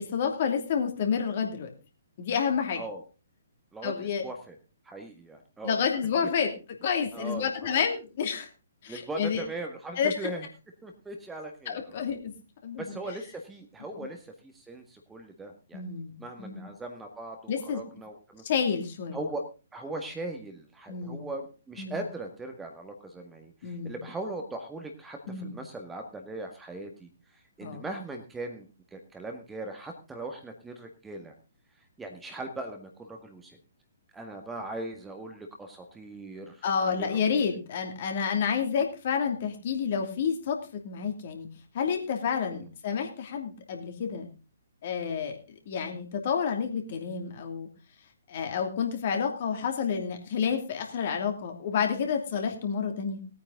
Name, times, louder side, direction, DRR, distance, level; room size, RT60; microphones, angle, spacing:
voice 1, 0.0-1.7 2.2-2.8 3.8-4.2 5.6-6.5 6.8-8.5 8.8-9.4 10.0-10.3 11.7-12.3 12.6-13.0 15.7-16.6 17.5-17.8 18.4-19.2 20.9-21.2 21.8-22.0 23.6-24.0 25.3-25.6 27.6-27.8 36.6-40.6 40.8-41.5 41.7-44.3 44.8-45.4 45.7-47.7 48.3-53.2, left 6 dB, 45° left, 4 dB, 2.8 m, -29 dB
voice 2, 3.7-4.6 4.8-5.8 7.1-7.8 8.9-10.5 10.8-12.0 12.8-15.8 16.2-18.4 19.1-19.5 19.7-31.3 32.0-33.6 34.1-37.2 42.5-42.7, right 2 dB, 10° right, 4 dB, 1.7 m, -39 dB
19.0 x 9.3 x 3.8 m, 0.31 s
figure-of-eight pair, 125°, 0 cm